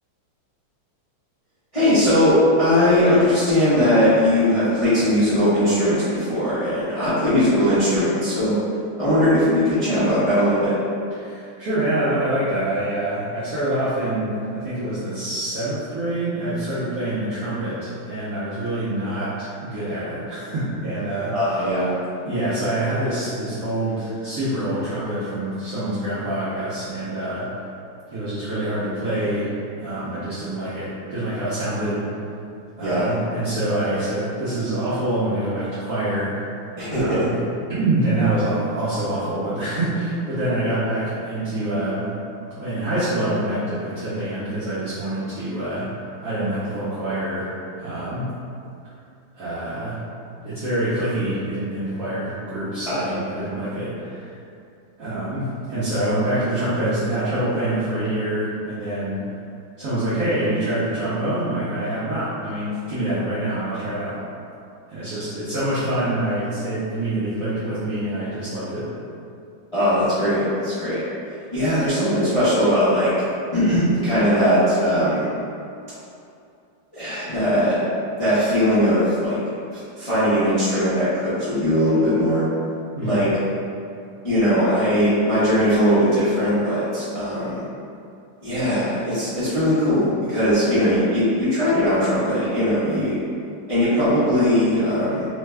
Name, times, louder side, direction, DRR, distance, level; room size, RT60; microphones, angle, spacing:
voice 1, 1.7-8.5 9.0-10.7 21.3-21.9 32.8-33.1 36.8-37.2 52.9-53.1 69.7-71.0 71.5-73.1 73.5-75.2 76.9-77.8 78.2-79.4 80.0-82.5 83.0-83.3 84.2-87.6 88.4-93.2 93.7-95.3, equal, 40° left, -15 dB, 0.4 m, -19 dB
voice 2, 11.2-21.3 22.3-27.5 28.1-32.0 32.8-36.3 36.9-37.3 37.7-42.1 42.6-45.9 46.2-47.5 47.8-48.3 49.3-50.0 50.4-54.4 55.0-59.2 59.8-64.2 64.9-68.9 83.0-83.2, right 1 dB, 65° right, -13 dB, 0.9 m, -26 dB
3.4 x 2.2 x 3.2 m, 2.5 s
omnidirectional pair, 2.2 m